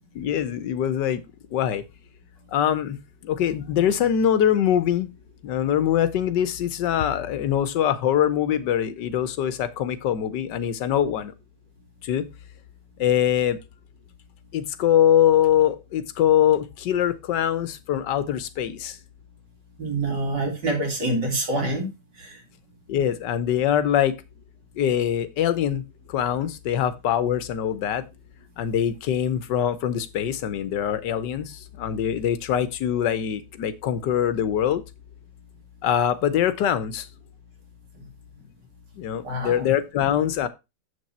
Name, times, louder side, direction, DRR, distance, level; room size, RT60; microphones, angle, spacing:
voice 1, 0.2-1.2 1.5-1.8 2.5-3.0 3.3-5.1 5.4-11.3 12.1-12.2 13.0-13.6 14.5-18.9 22.9-24.1 24.8-25.8 26.1-28.0 28.6-31.4 31.8-34.8 35.8-37.0 39.0-40.5, left 10 dB, 90° left, 1.5 m, -23 dB
voice 2, 19.8-21.9 22.2-22.4 39.2-39.7, right 2 dB, 80° right, 3.3 m, -26 dB
7.4 x 6.4 x 4.2 m
omnidirectional pair, 1.8 m